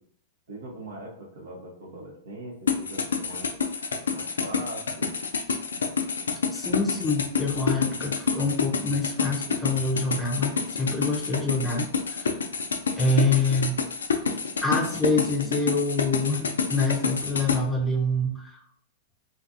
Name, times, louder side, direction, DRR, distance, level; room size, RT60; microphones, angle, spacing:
voice 1, 0.5-3.5 4.1-5.1, right 1 dB, 70° right, 0 dB, 0.8 m, -41 dB
sound 1, 2.7-17.6, left 5 dB, 80° left, 0.3 m, -28 dB
voice 2, 6.5-12.4 13.0-13.8 14.6-18.6, left 2 dB, 15° left, 0 dB, 0.6 m, -26 dB
2.5 x 2.4 x 2.6 m, 0.65 s
figure-of-eight pair, 100°, 0 cm